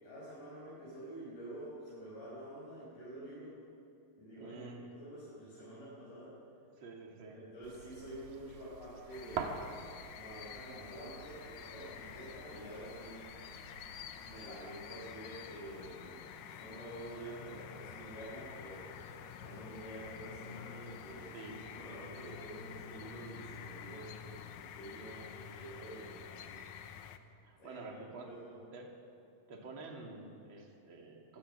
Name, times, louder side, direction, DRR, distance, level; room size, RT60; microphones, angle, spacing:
voice 1, 0.0-3.6 4.2-6.3 7.3-9.6 10.1-13.2 14.2-18.9 19.4-26.6 27.6-28.6, right 1 dB, 50° left, -9 dB, 6.9 m, -48 dB
voice 2, 4.3-4.9 6.8-7.4 21.3-21.7 27.4-28.3 28.7-28.9 29.5-31.4, right 3 dB, 35° right, 0 dB, 2.9 m, -49 dB
sound 1, 7.6-14.9, right 5 dB, 65° right, 3.1 m, -47 dB
sound 2, 9.1-27.2, left 8 dB, 75° left, 1.8 m, -49 dB
24.0 x 17.0 x 6.9 m, 2.6 s
omnidirectional pair, 4.6 m